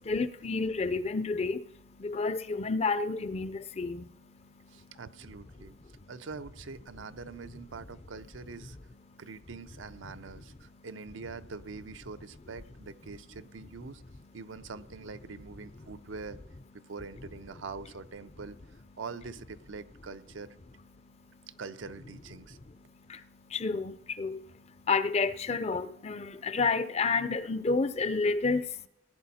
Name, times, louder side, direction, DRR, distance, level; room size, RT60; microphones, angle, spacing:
voice 1, 0.1-1.6 2.0-4.1 23.1-23.2 23.5-24.4 24.9-28.7, left 4 dB, 35° left, 0.5 m, -30 dB
voice 2, 4.7-5.8 6.1-8.8 9.2-14.0 14.3-16.4 16.7-18.6 19.0-20.6 21.5-22.6, right 4 dB, 85° right, 0.6 m, -44 dB
18.0 x 10.0 x 4.2 m
head